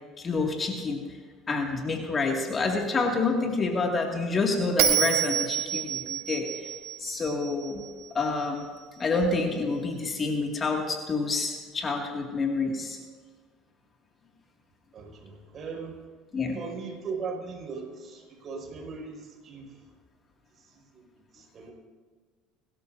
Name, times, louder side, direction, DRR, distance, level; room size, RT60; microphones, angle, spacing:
voice 1, 0.2-1.0 1.5-6.7 7.0-7.8 8.1-8.7 9.0-13.0 16.3-16.6, left 3 dB, 30° left, 1 dB, 2.2 m, -28 dB
Bell, 4.8-8.0, right 10 dB, 75° right, 1.8 m, -28 dB
voice 2, 14.9-16.0 16.5-19.8 20.7-21.7, right 5 dB, 40° right, -1 dB, 5.4 m, -39 dB
29.5 x 13.0 x 2.7 m, 1.5 s
supercardioid pair, 95°, 0 cm